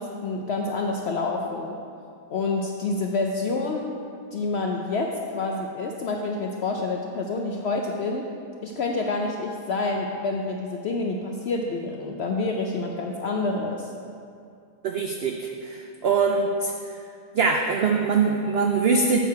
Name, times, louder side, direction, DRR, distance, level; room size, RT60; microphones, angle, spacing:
voice 1, 0.0-1.8 2.3-3.9 4.3-8.3 8.6-13.9, left 3 dB, 70° left, 1 dB, 0.6 m, -28 dB
voice 2, 14.8-16.7 17.3-19.2, right 4 dB, 85° right, 2 dB, 0.5 m, -23 dB
7.5 x 6.5 x 4.6 m, 2.4 s
omnidirectional pair, 1.6 m